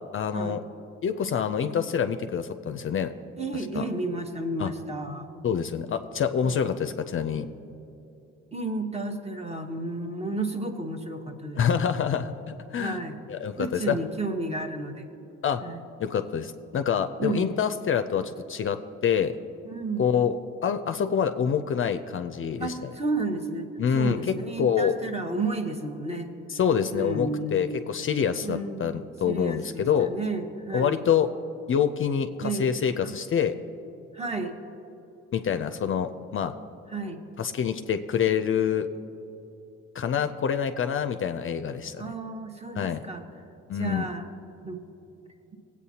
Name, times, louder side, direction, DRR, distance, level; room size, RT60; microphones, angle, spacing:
voice 1, 0.1-0.6 1.0-3.1 3.8-3.9 4.6-4.7 5.4-7.5 11.5-13.0 13.3-14.0 15.4-15.6 16.0-19.3 20.0-20.4 20.6-22.9 23.8-25.0 26.5-30.1 30.7-31.3 31.7-33.5 35.3-36.5 37.4-38.9 39.9-42.1 42.8-43.0 43.7-44.1, left 7 dB, 45° left, 8 dB, 0.5 m, -26 dB
voice 2, 3.4-5.3 6.4-6.6 8.5-11.9 12.8-13.2 13.6-15.1 15.6-15.8 17.2-17.6 19.6-20.2 22.6-26.3 26.9-27.8 28.4-28.9 29.2-31.1 32.4-32.7 33.0-33.1 34.1-34.6 36.9-37.2 42.0-43.2 43.7-44.3 44.6-44.8, right 2 dB, 20° right, 5 dB, 0.9 m, -32 dB
16.5 x 8.4 x 2.8 m, 2.9 s
cardioid pair, 90°, 30 cm